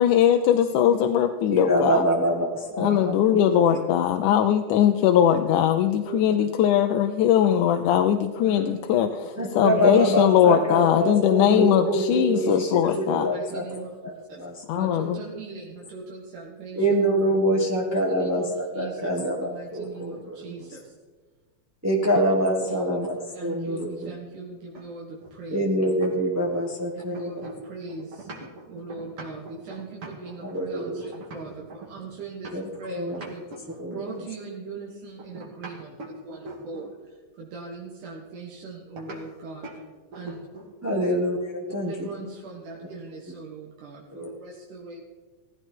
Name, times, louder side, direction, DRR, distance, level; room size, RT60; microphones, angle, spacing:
voice 1, 0.0-2.0 2.8-9.1 9.6-13.3 14.7-15.2, left 10 dB, 80° left, 6 dB, 2.2 m, -20 dB
voice 2, 1.5-3.7 9.4-14.9 16.7-20.3 21.8-24.1 25.5-27.3 30.5-31.1 32.5-32.6 32.9-33.2 33.8-34.0 40.8-41.9 44.1-44.3, equal, 15° right, -1 dB, 0.5 m, -25 dB
voice 3, 2.7-3.1 3.5-3.6 6.0-6.7 8.4-9.5 9.8-9.9 10.6-10.8 11.5-11.8 12.5-13.9 14.3-14.5 14.8-16.9 17.5-17.7 18.1-20.9 22.0-22.1 22.6-23.1 23.3-25.7 26.9-28.3 28.7-39.8 40.1-40.4 40.9-41.2 41.8-45.0, right 4 dB, 80° right, -2 dB, 3.2 m, -40 dB
sound 1, 24.7-26.7 27.0-32.8 33.1-34.3 35.2-37.0 39.0-39.2 39.6-39.8 40.1-40.8, right 2 dB, 45° right, 3.0 m, -42 dB
17.0 x 15.5 x 4.5 m, 1.3 s
omnidirectional pair, 3.6 m